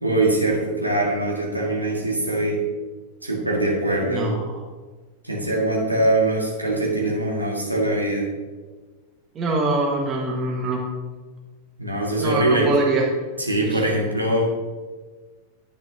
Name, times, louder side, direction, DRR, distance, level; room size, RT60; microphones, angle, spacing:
voice 1, 0.0-2.6 3.2-4.3 5.2-8.3 11.8-12.7 13.4-14.6, right 1 dB, 85° right, -1 dB, 1.7 m, -22 dB
voice 2, 4.1-4.6 9.3-10.8 12.2-13.0 13.7-13.8, right 2 dB, 25° right, -2 dB, 1.5 m, -24 dB
10.5 x 8.8 x 2.8 m, 1.4 s
figure-of-eight pair, 90°, 0 cm